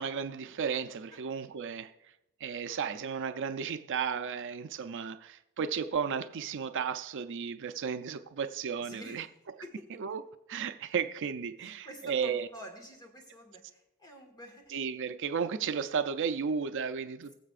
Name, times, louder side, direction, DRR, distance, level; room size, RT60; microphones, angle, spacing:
voice 1, 0.0-1.9 2.4-9.2 10.0-10.2 10.5-12.5 14.7-17.3, right 6 dB, 60° right, 0.4 m, -34 dB
voice 2, 8.8-9.3 9.6-10.2 11.6-14.7, equal, 20° left, 1.8 m, -48 dB
21.0 x 7.4 x 2.5 m
head